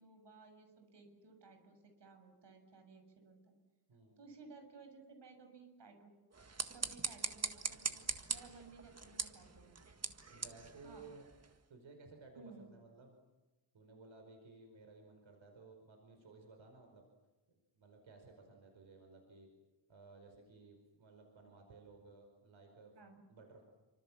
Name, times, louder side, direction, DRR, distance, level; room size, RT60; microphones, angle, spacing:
voice 1, 0.0-3.5 4.2-6.1 6.7-9.8 10.8-11.1 12.4-12.7 22.9-23.2, right 4 dB, 65° right, 5 dB, 7.1 m, -58 dB
sound 1, 6.3-11.6, right 4 dB, 35° right, 1.8 m, -42 dB
voice 2, 10.3-11.3 11.7-13.2 13.7-17.0 17.7-19.5 19.9-22.9 23.3-23.6, right 3 dB, 90° right, 3 dB, 5.2 m, -57 dB
29.0 x 25.5 x 7.4 m, 1.1 s
wide cardioid pair, 150°, 45 cm